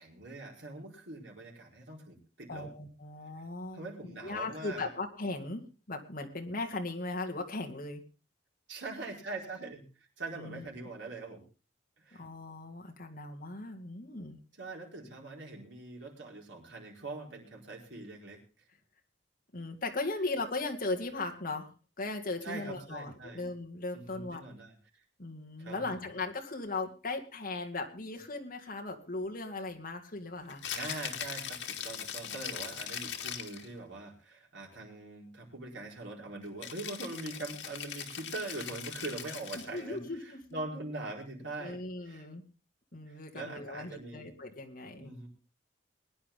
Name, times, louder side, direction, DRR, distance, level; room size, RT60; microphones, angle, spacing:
voice 1, 0.0-2.7 3.7-4.9 8.7-9.8 10.2-11.4 12.0-12.2 14.6-18.4 22.4-23.4 23.9-24.7 25.6-26.1 30.7-41.8 42.1-42.3 43.1-44.3 44.9-45.3, right 2 dB, 80° right, 0 dB, 4.6 m, -42 dB
voice 2, 2.5-8.0 10.3-10.7 12.1-14.4 19.5-21.7 22.0-24.4 25.2-30.6 39.5-40.6 41.6-42.4 42.9-45.1, left 2 dB, 50° left, 3 dB, 2.2 m, -38 dB
Rattle (instrument), 30.5-33.7 36.6-39.8, left 8 dB, 85° left, 2.0 m, -40 dB
22.0 x 10.0 x 3.8 m, 0.32 s
head